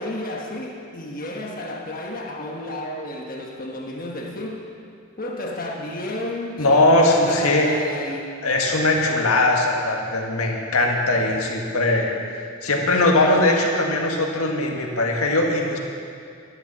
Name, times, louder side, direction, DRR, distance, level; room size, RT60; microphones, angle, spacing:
voice 1, 0.0-4.7 5.2-8.3, left 1 dB, 40° left, -1 dB, 1.3 m, -32 dB
voice 2, 6.6-7.7 8.4-12.1 12.6-15.8, left 2 dB, 85° left, 0 dB, 1.8 m, -20 dB
11.5 x 10.5 x 7.2 m, 2.4 s
head